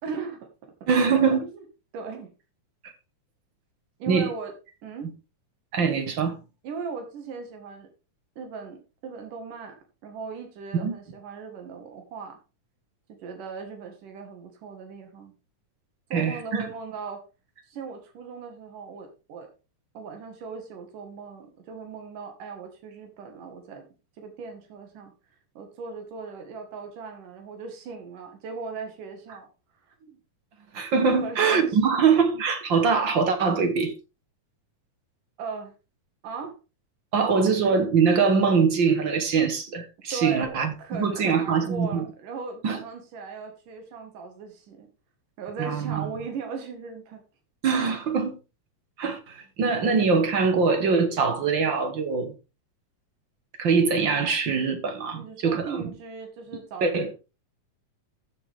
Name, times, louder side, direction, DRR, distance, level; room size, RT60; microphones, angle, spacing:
voice 1, 0.0-1.6 1.9-2.3 4.0-4.5 4.8-5.1 6.6-7.9 8.4-8.8 9.0-9.8 10.0-12.4 13.1-15.3 16.1-17.2 17.7-19.5 19.9-23.9 24.2-25.1 25.5-29.5 30.0-30.2 31.2-32.1 35.4-35.7 36.2-36.6 37.1-37.5 40.1-44.9 45.4-47.2 55.1-57.1, right 5 dB, 85° right, 3.4 m, -38 dB
voice 2, 0.9-1.4 2.8-2.9 4.1-4.3 5.7-6.4 10.7-10.9 16.1-16.7 30.7-33.9 37.1-42.1 42.6-42.8 45.6-46.1 47.6-48.4 49.0-52.3 53.6-55.8 56.8-57.1, right 5 dB, 55° right, 1.4 m, -23 dB
14.0 x 7.0 x 3.6 m
omnidirectional pair, 3.6 m